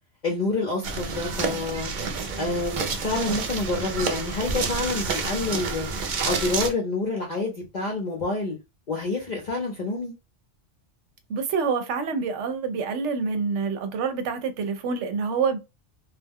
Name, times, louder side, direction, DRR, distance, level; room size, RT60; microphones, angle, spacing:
voice 1, 0.2-1.9 2.4-5.9 6.2-8.6 8.9-10.1, left 3 dB, 45° left, 0.6 m, -28 dB
sound 1, 0.8-6.7, right 4 dB, 55° right, 0.5 m, -29 dB
voice 2, 11.3-15.6, right 5 dB, 75° right, 0.9 m, -27 dB
2.3 x 2.1 x 3.4 m
omnidirectional pair, 1.2 m